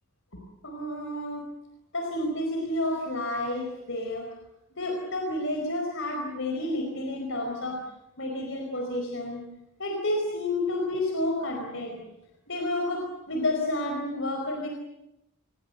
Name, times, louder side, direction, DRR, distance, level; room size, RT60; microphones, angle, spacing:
voice 1, 0.6-1.4 1.9-4.3 4.8-7.8 8.2-9.4 9.8-12.0 12.5-14.7, left 1 dB, 60° left, 2 dB, 4.7 m, -30 dB
28.0 x 22.5 x 8.0 m, 0.87 s
head